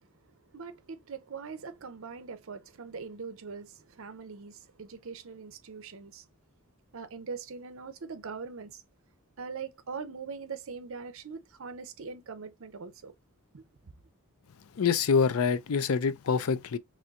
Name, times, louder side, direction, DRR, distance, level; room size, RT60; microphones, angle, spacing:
voice 1, 0.5-6.3 6.9-8.8 9.4-13.1 13.5-13.9, right 5 dB, 65° right, 0.6 m, -42 dB
voice 2, 14.8-16.8, left 6 dB, 80° left, 0.5 m, -26 dB
4.3 x 3.1 x 2.4 m
head